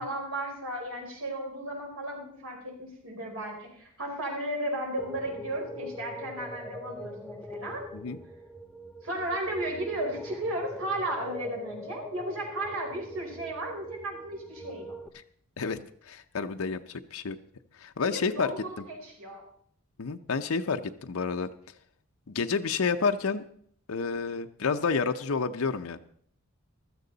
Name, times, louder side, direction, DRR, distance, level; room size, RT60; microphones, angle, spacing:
voice 1, 0.0-7.8 9.0-14.9 18.0-19.4, right 1 dB, 90° right, 0 dB, 4.8 m, -34 dB
sound 1, 5.0-15.1, equal, 5° left, 0.6 m, -42 dB
voice 2, 15.6-17.4 17.8-18.5 20.0-21.5 22.3-23.4 23.9-26.0, left 5 dB, 80° left, 7 dB, 0.7 m, -29 dB
15.0 x 13.0 x 4.0 m, 0.64 s
head